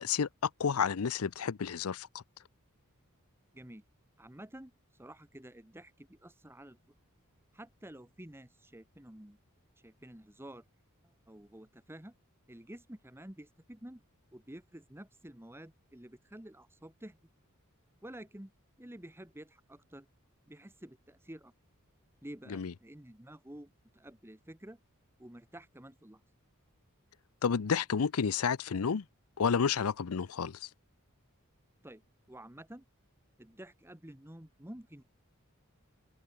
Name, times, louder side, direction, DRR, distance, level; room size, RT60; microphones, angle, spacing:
voice 1, 0.0-2.2 22.5-22.7 27.4-29.0 29.4-30.7, left 6 dB, 80° left, 0.6 m, -31 dB
voice 2, 3.5-3.8 4.2-6.8 7.5-9.4 9.8-10.6 11.0-12.1 12.5-14.0 14.3-17.2 18.0-18.5 18.8-20.1 20.5-21.5 22.2-24.8 25.2-26.2 31.8-32.0 32.3-32.8 33.4-35.0, right 1 dB, 10° right, 1.5 m, -50 dB
open air
head